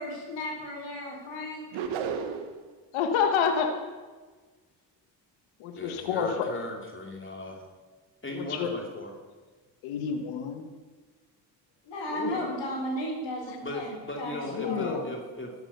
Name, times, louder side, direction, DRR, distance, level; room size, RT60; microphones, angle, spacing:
voice 1, 0.0-1.7 2.2-2.3 11.9-15.1, equal, 60° left, -6 dB, 5.5 m, -35 dB
sound 1, 1.7-2.6, right 6 dB, 80° right, 1.5 m, -32 dB
voice 2, 2.9-3.8 5.6-6.5 8.3-8.7 9.8-10.7 12.1-12.6 14.5-15.0, left 6 dB, 85° left, 6 dB, 1.5 m, -29 dB
voice 3, 5.8-7.7 8.2-9.1 13.6-15.5, left 1 dB, 25° left, 1 dB, 2.6 m, -37 dB
13.5 x 10.0 x 6.8 m, 1.4 s
supercardioid pair, 65°, 47 cm